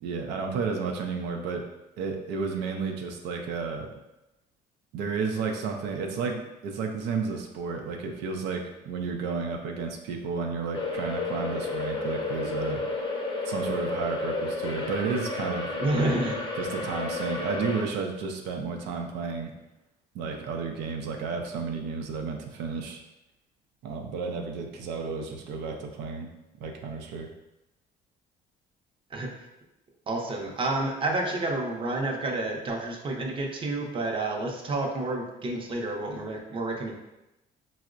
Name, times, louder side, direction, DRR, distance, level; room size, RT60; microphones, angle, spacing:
voice 1, 0.0-1.7 2.0-3.9 4.9-12.8 13.4-16.1 16.6-19.5 20.1-23.0 23.8-26.3 26.6-27.3, right 5 dB, 90° right, 2 dB, 0.5 m, -32 dB
sound 1, 10.7-17.8, left 3 dB, 30° left, 0.6 m, -32 dB
voice 2, 15.8-16.4 29.1-29.5 30.1-36.9, right 2 dB, 30° right, 1 dB, 0.5 m, -29 dB
4.3 x 2.0 x 2.4 m, 0.94 s
cardioid pair, 110°, 17 cm